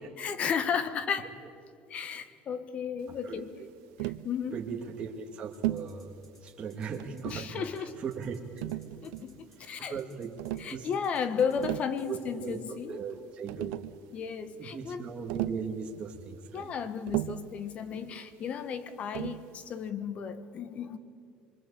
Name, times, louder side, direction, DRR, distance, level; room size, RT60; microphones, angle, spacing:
voice 1, 0.2-1.3 1.9-3.5 4.0-4.6 7.2-8.0 9.0-10.0 10.6-13.0 13.6-13.7 14.1-15.1 16.5-21.0, left 7 dB, 40° left, 13 dB, 1.5 m, -34 dB
voice 2, 3.2-3.7 4.5-6.1 6.4-8.4 9.9-10.4 10.7-10.9 12.1-12.6 12.9-13.8 14.6-16.7, right 6 dB, 30° right, -1 dB, 2.1 m, -38 dB
Tap, 4.0-4.3 5.6-5.9 7.0-7.6 8.6-9.4 10.4-10.7 11.4-12.0 13.1-13.2 13.5-14.0 15.3-15.7 17.1-17.5 19.1-19.5, right 17 dB, 90° right, 0.7 m, -35 dB
sound 1, 5.4-11.7 12.0-12.9, right 1 dB, 15° left, 6.8 m, -62 dB
25.5 x 23.5 x 8.6 m, 2.5 s
cardioid pair, 135°, 3 cm